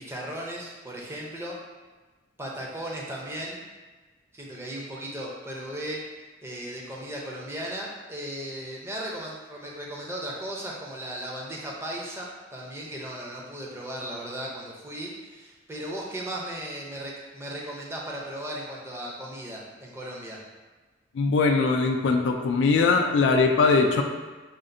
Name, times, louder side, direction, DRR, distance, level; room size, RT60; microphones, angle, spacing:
voice 1, 0.0-1.6 2.4-3.6 4.3-6.0 6.4-20.4, right 1 dB, 15° right, -3 dB, 0.6 m, -36 dB
voice 2, 21.1-24.0, left 4 dB, 70° left, 3 dB, 0.3 m, -21 dB
5.1 x 2.4 x 2.6 m, 1.3 s
head